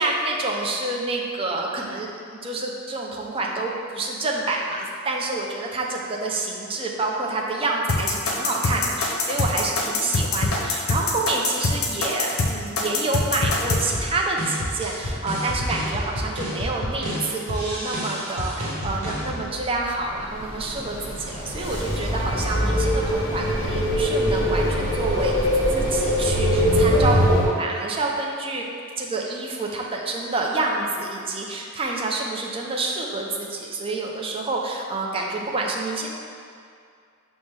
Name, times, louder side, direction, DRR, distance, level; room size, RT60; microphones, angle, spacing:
voice 1, 0.0-25.4 25.7-28.6 29.0-36.2, right 2 dB, 25° right, -1 dB, 0.4 m, -28 dB
sound 1, 7.9-13.8, left 3 dB, 80° left, 0.6 m, -23 dB
sound 2, 13.9-20.1, equal, 85° right, 0.9 m, -30 dB
sound 3, 20.2-27.5, equal, 25° left, 1.1 m, -22 dB
5.8 x 2.1 x 3.2 m, 2.3 s
head